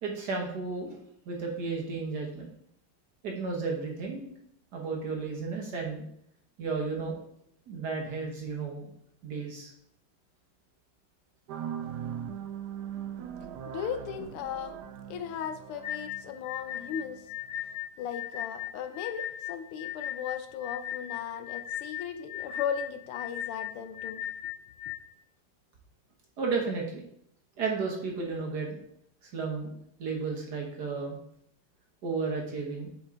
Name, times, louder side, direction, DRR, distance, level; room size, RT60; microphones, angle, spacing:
voice 1, 0.0-1.0 1.2-2.5 3.2-4.3 4.7-6.0 6.6-7.2 7.7-8.9 9.2-9.7 26.4-27.0 27.6-28.8 29.2-29.7 30.0-31.2 32.0-32.9, right 4 dB, 55° right, 1.6 m, -33 dB
sound 1, 11.5-17.8, right 9 dB, 85° right, 0.9 m, -40 dB
voice 2, 13.7-14.8 15.1-17.2 18.0-24.2, left 8 dB, 85° left, 1.6 m, -36 dB
sound 2, 15.8-25.0, left 11 dB, 10° left, 1.9 m, -37 dB
7.5 x 4.5 x 3.7 m
omnidirectional pair, 2.4 m